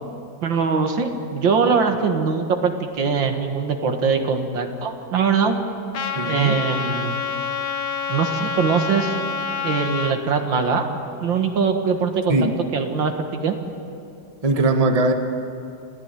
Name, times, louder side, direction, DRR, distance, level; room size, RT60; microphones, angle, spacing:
voice 1, 0.4-5.6 6.3-7.2 8.1-9.1 9.6-10.9 11.2-13.6, right 5 dB, 80° right, 5 dB, 2.3 m, -22 dB
Trumpet, 5.9-10.1, left 6 dB, 65° left, 1.8 m, -27 dB
voice 2, 6.1-6.5 12.3-12.5 14.4-15.1, right 2 dB, 20° right, 5 dB, 1.2 m, -19 dB
27.0 x 15.0 x 9.1 m, 2.6 s
omnidirectional pair, 2.0 m